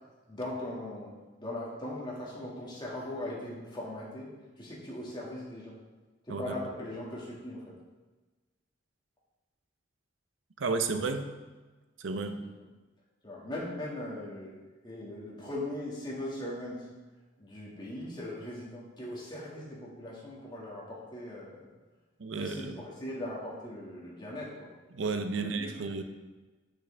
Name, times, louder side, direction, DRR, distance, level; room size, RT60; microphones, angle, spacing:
voice 1, 0.3-1.1 1.4-4.3 4.6-5.8 6.2-7.8 12.3-12.6 13.2-14.6 14.8-16.9 17.4-21.7 22.4-24.7 25.3-26.0, left 1 dB, 25° left, -5 dB, 1.8 m, -39 dB
voice 2, 10.6-11.3 12.0-12.4 22.2-22.8 24.9-26.0, right 4 dB, 85° right, 7 dB, 0.6 m, -32 dB
8.2 x 6.1 x 3.3 m, 1.2 s
head